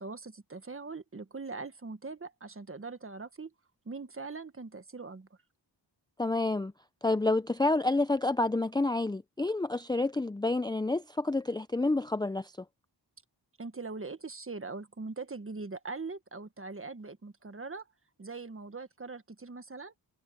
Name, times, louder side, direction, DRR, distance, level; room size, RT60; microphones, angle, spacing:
voice 1, 0.0-3.5 3.8-5.3 13.6-17.9 18.2-19.9, right 3 dB, 30° right, 1.4 m, -41 dB
voice 2, 6.2-6.7 7.0-12.5, left 2 dB, 10° left, 0.5 m, -29 dB
wide cardioid pair, 90°, 42 cm